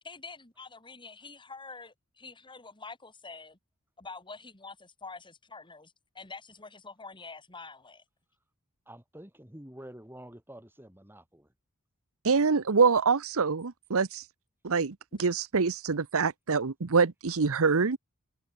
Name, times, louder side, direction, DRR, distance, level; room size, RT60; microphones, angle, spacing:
voice 1, 0.0-3.6 4.0-8.0 15.1-15.3, left 4 dB, 20° left, 3.7 m, -46 dB
voice 2, 8.9-11.5, right 1 dB, 10° right, 5.9 m, -48 dB
voice 3, 12.2-14.2 14.6-18.0, right 5 dB, 70° right, 0.9 m, -25 dB
head